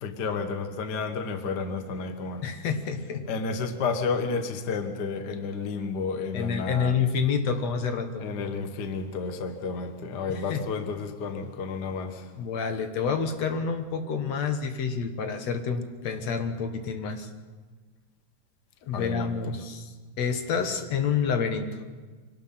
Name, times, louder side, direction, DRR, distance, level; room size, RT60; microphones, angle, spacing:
voice 1, 0.0-2.4 3.3-7.0 8.2-12.3 18.9-19.4, left 4 dB, 45° left, 7 dB, 1.4 m, -31 dB
voice 2, 2.4-3.3 6.3-8.3 10.3-10.7 12.4-17.3 18.8-21.8, left 6 dB, 65° left, 7 dB, 2.4 m, -28 dB
25.0 x 18.5 x 5.7 m, 1.4 s
omnidirectional pair, 3.4 m